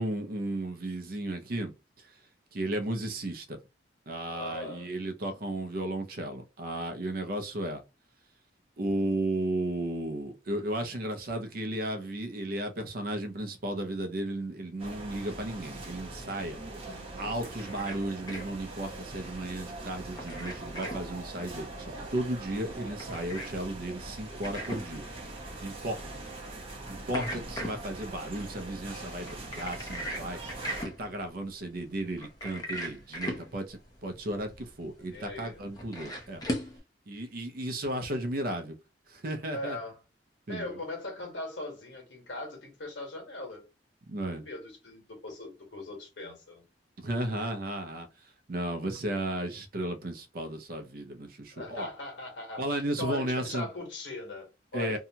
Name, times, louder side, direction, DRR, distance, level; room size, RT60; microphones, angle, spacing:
voice 1, 0.0-2.2 2.5-3.6 4.1-7.8 8.8-16.6 17.2-25.0 25.6-26.0 26.9-30.4 30.8-36.4 37.1-38.7 39.1-39.8 40.5-40.8 44.1-44.5 47.0-51.9 52.6-53.7 54.7-55.0, right 1 dB, 55° right, 0.6 m, -34 dB
voice 2, 4.3-4.9 35.0-35.6 39.5-40.0 40.5-43.6 44.3-46.6 51.5-52.7 53.0-55.0, left 2 dB, 85° left, 1.2 m, -40 dB
sound 1, 14.8-30.9, right 2 dB, 35° right, 0.8 m, -42 dB
sound 2, 17.4-36.8, equal, 20° left, 0.7 m, -41 dB
2.8 x 2.3 x 2.7 m
head